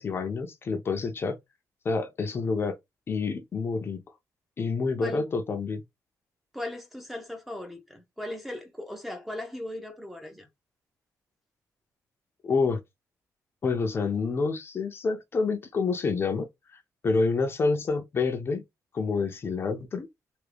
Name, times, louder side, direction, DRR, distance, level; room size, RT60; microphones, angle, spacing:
voice 1, 0.0-1.4 1.8-2.7 3.1-4.0 4.6-5.8 12.4-12.8 13.6-18.6 18.9-20.1, left 4 dB, 35° left, 0.6 m, -28 dB
voice 2, 6.5-10.5, left 1 dB, 5° right, 0.7 m, -38 dB
3.4 x 2.3 x 3.3 m
cardioid pair, 150°, 7 cm